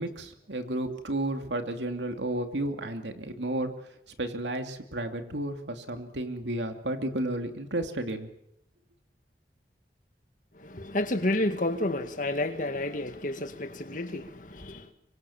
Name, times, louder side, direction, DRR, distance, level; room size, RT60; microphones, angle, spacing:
voice 1, 0.0-3.7 4.2-8.3, right 1 dB, 85° right, 2.7 m, -32 dB
voice 2, 10.6-14.9, left 1 dB, 50° left, 2.1 m, -30 dB
25.0 x 24.5 x 7.3 m
head